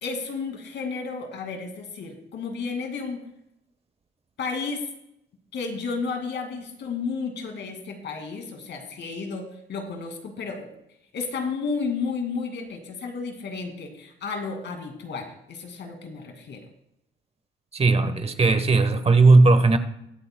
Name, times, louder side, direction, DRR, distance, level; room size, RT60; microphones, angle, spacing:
voice 1, 0.0-3.2 4.4-4.9 5.5-10.7 11.1-16.6, left 4 dB, 65° left, 2.2 m, -32 dB
voice 2, 17.7-19.8, right 3 dB, 30° right, 1.1 m, -17 dB
22.5 x 8.1 x 2.2 m
cardioid pair, 90°, 20 cm